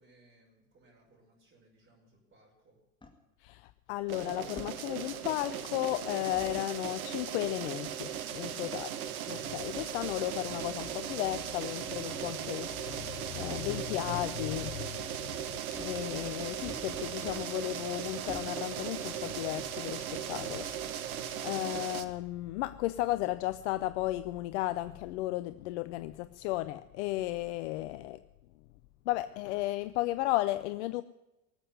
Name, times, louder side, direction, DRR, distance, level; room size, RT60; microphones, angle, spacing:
voice 1, 0.0-2.8, right 1 dB, 25° right, 6.0 m, -64 dB
sound 1, 3.0-3.1 4.6-4.7 6.3-6.6 8.4-8.6 9.4-9.5 10.3-10.4 10.7-10.8 12.1-12.3 13.6-13.8 14.1-14.2 15.7-16.0 16.6-17.8 18.3-18.5, left 2 dB, 10° left, 2.2 m, -48 dB
voice 2, 3.4-28.2 29.1-31.0, left 16 dB, 50° left, 0.6 m, -34 dB
sound 2, 4.1-22.0, right 9 dB, 70° right, 1.3 m, -38 dB
19.0 x 7.8 x 9.4 m
figure-of-eight pair, 85°, 44 cm